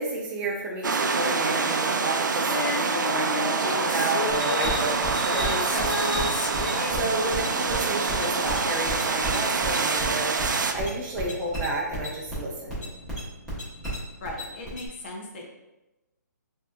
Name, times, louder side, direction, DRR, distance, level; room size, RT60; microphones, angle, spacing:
voice 1, 0.0-12.9, right 2 dB, 10° right, -3 dB, 0.6 m, -31 dB
sound 1, 0.8-10.7, right 4 dB, 80° right, 0.4 m, -26 dB
Female singing, 2.5-9.1 9.4-9.5, left 5 dB, 75° left, 0.4 m, -34 dB
sound 2, 4.3-14.9, equal, 5° left, 1.2 m, -34 dB
voice 2, 6.7-7.0 14.2-15.5, left 1 dB, 35° left, 0 dB, 0.7 m, -38 dB
4.5 x 2.8 x 2.5 m, 1.0 s
hypercardioid pair, 160°, 10 cm